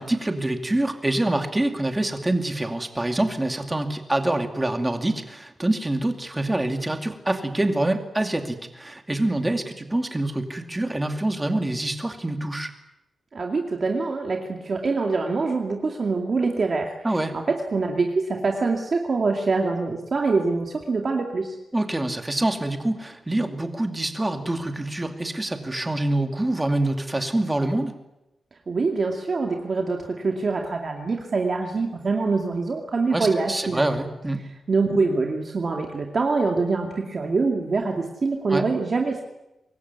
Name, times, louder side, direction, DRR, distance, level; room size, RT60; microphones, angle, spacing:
voice 1, 0.0-12.7 17.0-17.3 21.7-27.9 33.1-34.4 38.5-38.7, right 1 dB, 10° right, 5 dB, 2.4 m, -25 dB
voice 2, 13.3-16.9 17.3-21.6 28.7-33.9 34.7-39.2, right 3 dB, 40° right, 2 dB, 2.4 m, -24 dB
25.0 x 21.5 x 9.5 m, 0.94 s
wide cardioid pair, 180°, 0 cm